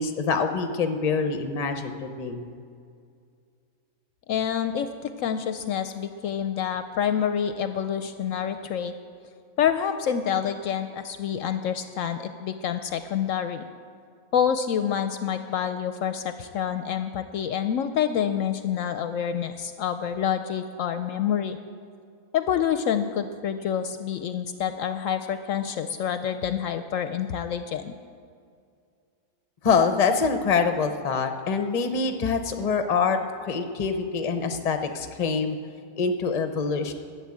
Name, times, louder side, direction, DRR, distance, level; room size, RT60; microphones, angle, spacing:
voice 1, 0.0-2.5 29.6-35.6 36.0-36.9, left 5 dB, 35° left, 8 dB, 0.7 m, -25 dB
voice 2, 4.3-8.9 9.6-13.7 14.3-21.6 22.3-27.9, left 8 dB, 70° left, 10 dB, 0.9 m, -27 dB
11.5 x 7.1 x 8.6 m, 2.3 s
omnidirectional pair, 1.5 m